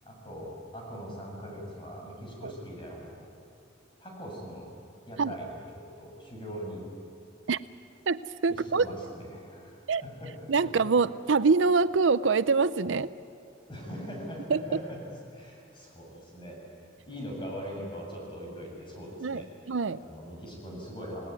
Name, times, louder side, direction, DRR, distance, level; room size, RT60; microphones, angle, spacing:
voice 1, 0.0-3.3 4.0-4.7 5.1-6.9 8.5-10.5 13.7-15.0 15.3-19.5 20.0-21.3, equal, 25° left, -1 dB, 7.5 m, -41 dB
voice 2, 8.1-8.8 9.9-10.0 10.5-13.1 14.5-14.6 19.2-19.4 19.7-20.0, right 4 dB, 75° right, 15 dB, 0.6 m, -24 dB
28.5 x 18.5 x 9.7 m, 2.5 s
head